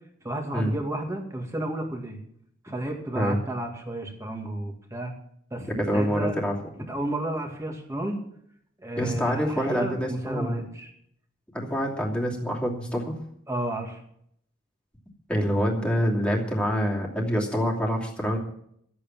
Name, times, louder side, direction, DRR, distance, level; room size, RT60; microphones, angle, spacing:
voice 1, 0.2-2.2 2.6-5.1 5.5-6.4 6.9-8.2 8.8-10.9 13.5-14.0, right 1 dB, 15° right, 2 dB, 2.3 m, -32 dB
voice 2, 5.8-6.6 9.0-10.7 11.5-13.2 15.3-18.4, equal, 5° left, -3 dB, 2.8 m, -26 dB
13.5 x 8.5 x 7.4 m, 0.69 s
head